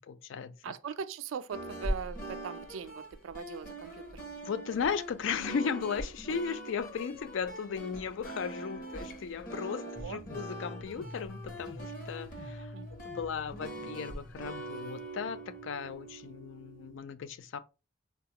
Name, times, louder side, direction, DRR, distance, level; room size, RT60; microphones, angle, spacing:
voice 1, 0.6-4.3 10.0-10.2 12.7-12.9, right 7 dB, 85° right, 0.3 m, -40 dB
sound 1, 1.5-17.0, right 1 dB, 45° left, 0.9 m, -42 dB
voice 2, 4.5-9.8 10.1-12.3 13.2-15.4 15.7-17.2 17.5-17.6, left 6 dB, 75° left, 0.4 m, -35 dB
sound 2, 10.0-15.9, left 2 dB, 20° left, 0.6 m, -48 dB
3.8 x 2.3 x 2.8 m
head